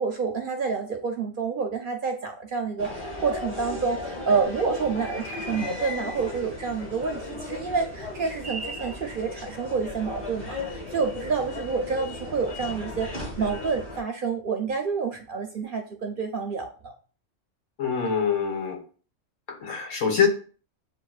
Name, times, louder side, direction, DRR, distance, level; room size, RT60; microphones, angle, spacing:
voice 1, 0.0-16.9, right 5 dB, 60° right, 4 dB, 0.6 m, -28 dB
sound 1, 2.8-14.0, left 2 dB, 25° left, 1.1 m, -36 dB
voice 2, 17.8-18.8 19.5-20.3, left 7 dB, 85° left, 1 dB, 1.5 m, -24 dB
7.9 x 2.7 x 2.3 m, 0.39 s
omnidirectional pair, 1.3 m